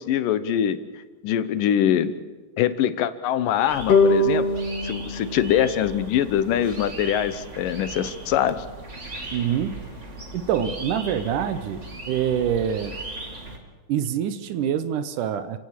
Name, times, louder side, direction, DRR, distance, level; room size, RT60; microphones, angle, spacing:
voice 1, 0.0-2.2 2.6-4.5 4.8-8.7, left 10 dB, 75° left, 13 dB, 2.5 m, -23 dB
sound 1, 3.7-13.6, right 2 dB, 25° right, 2.3 m, -38 dB
sound 2, 3.9-7.2, left 2 dB, 50° left, 2.5 m, -24 dB
voice 2, 9.3-9.9 10.3-13.0 13.9-15.6, right 9 dB, 70° right, 12 dB, 2.3 m, -25 dB
30.0 x 16.5 x 7.4 m, 1.3 s
omnidirectional pair, 4.0 m